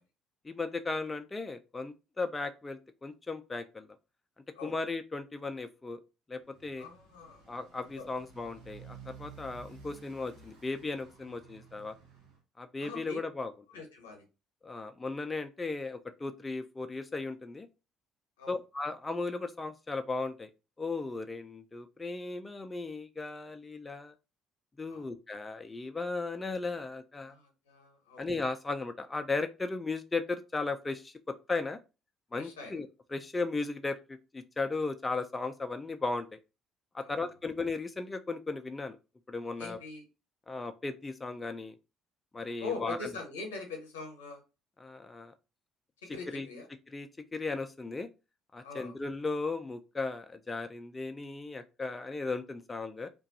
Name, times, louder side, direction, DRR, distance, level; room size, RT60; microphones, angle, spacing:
voice 1, 0.4-3.9 4.6-6.0 6.3-6.8 7.5-11.9 12.6-13.5 14.6-17.7 18.5-20.5 20.8-24.1 24.8-27.3 28.2-31.8 32.3-36.4 36.9-39.0 39.3-39.8 40.5-41.7 42.3-43.1 44.8-45.3 46.3-46.5 46.9-48.1 48.5-53.1, left 3 dB, 20° left, 8 dB, 0.3 m, -36 dB
Motorcycle, 6.4-12.4, right 5 dB, 85° right, 0.8 m, -53 dB
voice 2, 6.8-7.4 8.0-8.1 12.8-13.2 13.7-14.2 18.4-18.6 24.9-25.1 27.3-28.3 32.3-32.8 37.0-37.2 39.6-40.0 42.6-44.4 46.1-46.7 48.6-49.0, left 4 dB, 85° left, 2 dB, 0.8 m, -42 dB
2.3 x 2.2 x 2.6 m, 0.29 s
hypercardioid pair, 55°, 0 cm